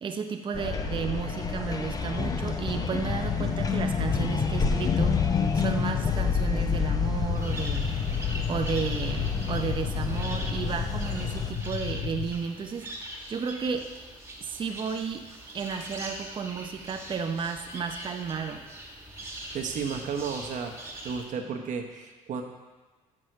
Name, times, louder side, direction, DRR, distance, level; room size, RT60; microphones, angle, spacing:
voice 1, 0.0-7.9 8.5-12.9 13.3-13.9 14.4-15.3 15.5-18.7, right 6 dB, 35° right, 5 dB, 0.7 m, -33 dB
sound 1, 0.5-11.5, left 5 dB, 25° left, 0.6 m, -29 dB
sound 2, 3.0-12.3, left 7 dB, 70° left, 0.9 m, -33 dB
sound 3, 7.3-21.3, right 1 dB, 15° right, 1.6 m, -42 dB
voice 2, 19.5-22.4, right 6 dB, 60° right, 4 dB, 1.0 m, -33 dB
6.2 x 5.4 x 6.5 m, 1.3 s
cardioid pair, 100°, 14 cm